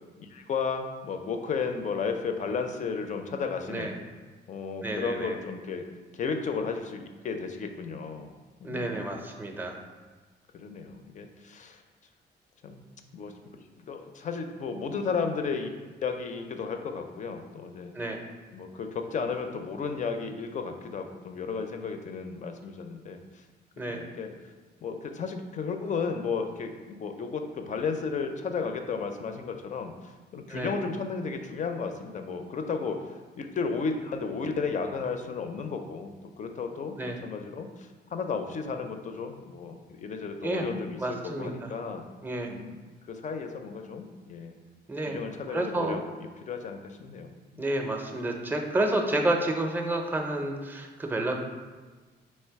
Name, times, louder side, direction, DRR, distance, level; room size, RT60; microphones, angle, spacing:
voice 1, 0.2-3.9 4.5-5.8 6.1-8.3 8.6-8.9 10.5-11.8 12.6-12.8 13.1-13.3 13.8-15.7 16.0-17.9 18.5-23.4 23.9-24.3 24.8-33.1 33.4-37.0 37.2-41.0 41.2-42.0 42.5-42.8 43.1-44.5 45.1-46.0 46.4-47.3, left 5 dB, 45° left, 6 dB, 0.4 m, -33 dB
voice 2, 4.8-5.4 8.6-9.8 17.9-18.2 23.8-24.0 30.5-30.7 37.0-37.2 40.4-40.7 41.0-41.7 42.2-42.5 44.9-45.2 45.5-46.0 47.6-51.3, right 1 dB, 10° right, 3 dB, 0.5 m, -30 dB
3.3 x 3.2 x 4.5 m, 1.3 s
cardioid pair, 125°, 18 cm